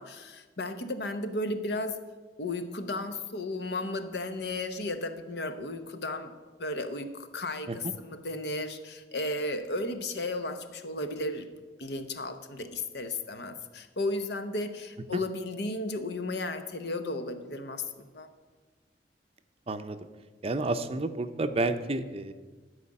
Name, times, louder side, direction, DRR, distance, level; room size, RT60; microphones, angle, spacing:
voice 1, 0.0-2.0 2.4-6.3 6.6-11.5 11.8-18.3, left 2 dB, 65° left, 9 dB, 0.9 m, -34 dB
voice 2, 19.7-20.0 20.4-22.3, right 2 dB, 35° right, 10 dB, 0.5 m, -30 dB
12.5 x 5.0 x 8.7 m, 1.3 s
head